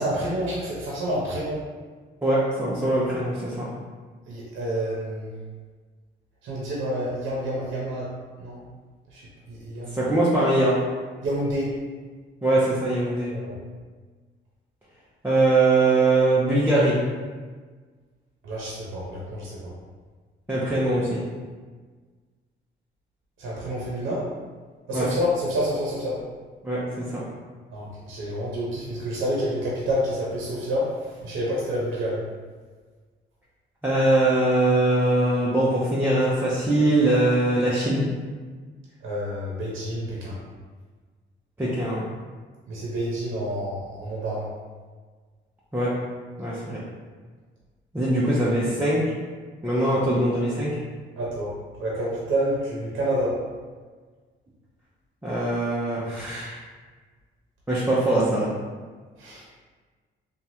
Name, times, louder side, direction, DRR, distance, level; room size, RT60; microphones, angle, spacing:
voice 1, 0.0-1.6 4.3-5.3 6.4-8.1 8.4-8.6 9.1-9.2 9.5-10.0 11.2-11.7 13.2-13.6 18.4-19.7 23.4-24.3 24.9-26.2 27.7-30.9 31.2-32.2 39.0-40.3 42.7-44.5 51.2-51.5 51.8-53.4 59.2-59.4, equal, 75° right, -5 dB, 0.7 m, -28 dB
voice 2, 2.2-3.7 9.9-10.8 12.4-13.3 15.2-17.0 20.5-21.2 24.9-25.1 26.6-27.2 33.8-38.0 41.6-42.0 45.7-45.9 46.4-46.8 47.9-49.0 49.6-50.7 55.2-56.6 57.7-58.5, right 2 dB, 10° right, -9 dB, 0.5 m, -22 dB
3.0 x 2.3 x 2.7 m, 1.5 s
cardioid pair, 90°, 20 cm